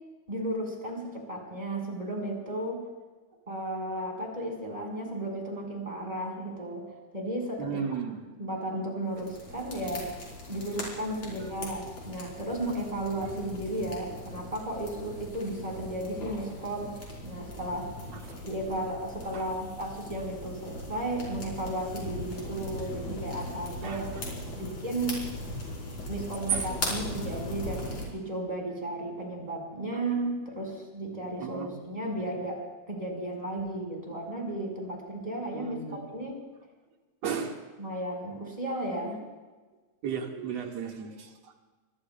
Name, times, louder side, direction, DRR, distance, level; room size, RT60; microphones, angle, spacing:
voice 1, 0.3-2.8 3.5-7.8 8.4-10.1 10.5-17.0 17.2-17.9 18.2-24.2 24.6-25.2 26.1-36.4 37.8-39.2, right 1 dB, 10° right, 0 dB, 4.9 m, -34 dB
voice 2, 7.6-8.2 11.3-11.4 19.3-19.4 23.8-24.2 26.5-27.0 31.4-31.7 35.5-36.0 37.2-37.6 40.0-41.6, right 7 dB, 65° right, 1 dB, 2.8 m, -34 dB
sound 1, 9.1-28.1, left 1 dB, 65° left, 5.9 m, -39 dB
25.5 x 24.5 x 2.3 m, 1.3 s
omnidirectional pair, 3.3 m